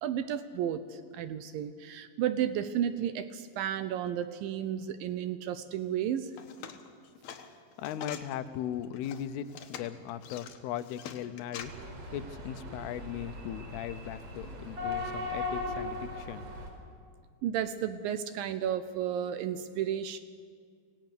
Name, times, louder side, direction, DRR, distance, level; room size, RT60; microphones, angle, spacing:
voice 1, 0.0-6.3 17.4-20.2, right 10 dB, 75° right, 11 dB, 2.2 m, -33 dB
sound 1, 6.3-8.3 8.8-11.7, left 8 dB, 70° left, 1.8 m, -44 dB
voice 2, 7.8-16.5, left 10 dB, 85° left, 12 dB, 2.7 m, -38 dB
sound 2, 11.6-16.7, left 2 dB, 40° right, 4.8 m, -38 dB
25.5 x 17.5 x 6.7 m, 2.1 s
omnidirectional pair, 4.5 m